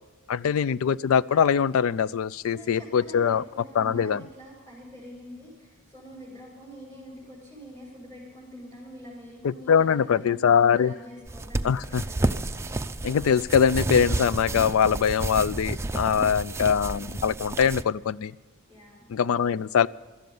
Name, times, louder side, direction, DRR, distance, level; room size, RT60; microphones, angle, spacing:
voice 1, 0.3-4.2 9.4-10.9 11.6-12.0 13.0-18.3 19.1-19.9, left 7 dB, 75° left, 19 dB, 0.4 m, -23 dB
voice 2, 2.5-12.3 18.7-19.1, equal, 15° left, -8 dB, 6.1 m, -46 dB
sound 1, 11.3-17.8, right 2 dB, 15° right, 0.5 m, -31 dB
18.0 x 13.0 x 5.5 m, 1.3 s
head